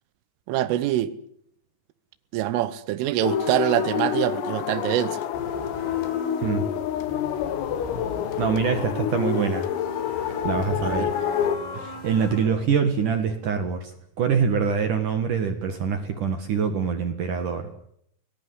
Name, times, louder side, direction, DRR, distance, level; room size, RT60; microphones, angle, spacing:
voice 1, 0.5-1.1 2.3-5.2 9.4-9.6 10.8-11.1, right 14 dB, 80° right, 3.5 m, -25 dB
sound 1, 3.2-11.6, left 9 dB, 90° left, 4.2 m, -28 dB
sound 2, 5.3-12.7, left 2 dB, 60° left, 8.3 m, -38 dB
voice 2, 8.4-9.7 10.4-11.2 11.7-17.7, right 6 dB, 55° right, 2.4 m, -25 dB
22.5 x 19.0 x 9.9 m
omnidirectional pair, 5.8 m